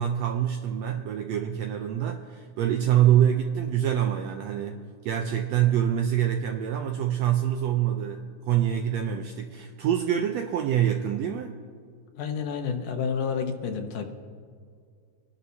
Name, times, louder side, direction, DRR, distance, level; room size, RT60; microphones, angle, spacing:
voice 1, 0.0-11.6, right 10 dB, 80° right, 4 dB, 1.5 m, -25 dB
voice 2, 12.2-14.1, left 6 dB, 80° left, 4 dB, 2.6 m, -29 dB
25.5 x 11.0 x 2.8 m, 2.2 s
omnidirectional pair, 3.7 m